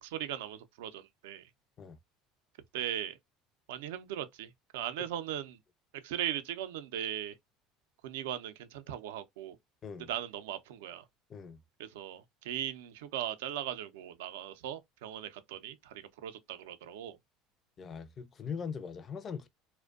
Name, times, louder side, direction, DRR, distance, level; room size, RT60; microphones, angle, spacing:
voice 1, 0.0-1.5 2.7-3.2 3.7-5.6 6.0-7.3 8.0-9.6 10.1-11.0 11.8-17.2, right 11 dB, 85° right, 0.4 m, -39 dB
voice 2, 17.8-19.5, left 6 dB, 40° left, 0.4 m, -41 dB
2.5 x 2.1 x 2.3 m
supercardioid pair, 95°, 0 cm